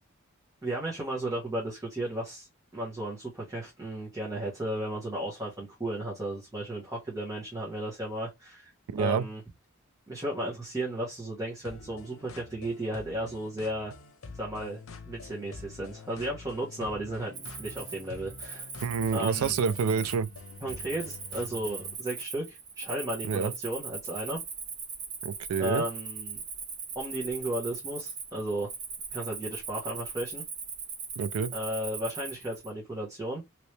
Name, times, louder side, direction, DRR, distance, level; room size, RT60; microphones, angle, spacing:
voice 1, 0.6-2.5 2.7-8.7 9.0-9.4 10.1-13.9 14.4-18.7 19.1-19.6 20.6-24.4 25.6-26.4 26.9-28.7 29.1-30.4 31.5-33.4, right 1 dB, 15° right, 1.1 m, -34 dB
voice 2, 8.9-9.3 18.8-20.3 23.2-23.5 25.2-25.8 31.2-31.5, right 6 dB, 85° right, 0.3 m, -28 dB
sound 1, 11.6-22.0, left 3 dB, 70° left, 0.7 m, -46 dB
Cricket, 17.3-32.7, right 5 dB, 55° right, 1.4 m, -40 dB
3.1 x 2.9 x 3.2 m
head